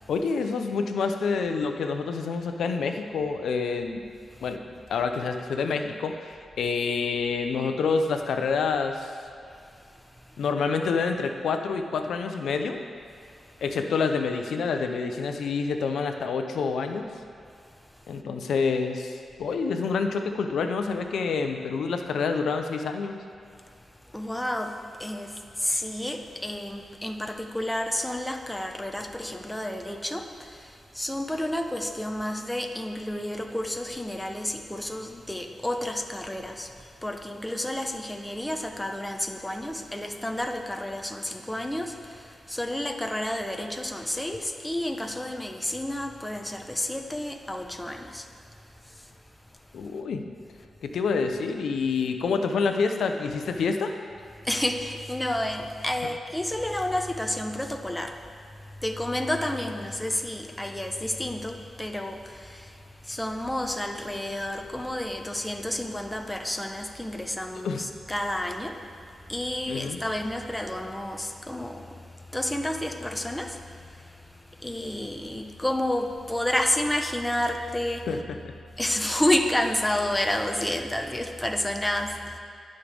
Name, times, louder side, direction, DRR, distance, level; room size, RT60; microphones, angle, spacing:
voice 1, 0.1-4.0 4.4-4.6 4.9-6.3 6.6-9.1 10.4-12.8 13.6-17.1 18.1-23.2 49.7-50.3 50.8-53.9 67.5-67.8 69.7-70.0 78.1-78.5, left 5 dB, 85° left, 6 dB, 0.8 m, -27 dB
voice 2, 9.7-10.4 23.7-23.8 24.0-48.3 48.8-49.1 54.4-58.2 58.6-68.8 69.1-78.1 78.8-82.4, left 1 dB, 10° left, 3 dB, 1.0 m, -30 dB
20.0 x 6.6 x 3.5 m, 2.4 s
cardioid pair, 60°, 0 cm